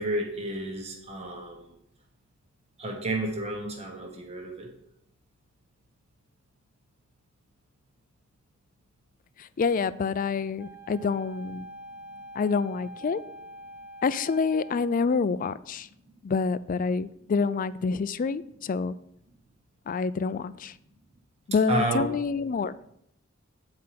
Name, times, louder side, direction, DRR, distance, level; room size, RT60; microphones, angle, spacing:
voice 1, 0.0-1.7 2.8-4.7 21.7-22.0, right 1 dB, 30° right, 1.2 m, -31 dB
voice 2, 9.4-11.7 12.4-13.2 14.0-15.9 16.2-18.9 19.9-20.7 21.5-22.8, left 5 dB, 40° left, 0.4 m, -27 dB
Wind instrument woodwind instrument, 10.6-15.0, right 1 dB, 5° right, 1.4 m, -45 dB
8.6 x 4.9 x 5.8 m
head